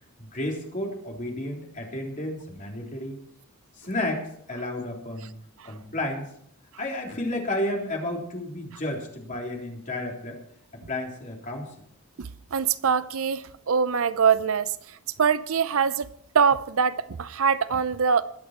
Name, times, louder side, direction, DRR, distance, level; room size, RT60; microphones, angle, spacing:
voice 1, 0.2-3.2 3.8-5.3 5.6-6.3 6.8-10.4 10.9-11.7, left 1 dB, 35° left, 3.5 m, -32 dB
voice 2, 12.2-14.7 15.2-16.1 16.3-18.2, right 6 dB, 65° right, 0.6 m, -23 dB
21.5 x 8.4 x 4.4 m
head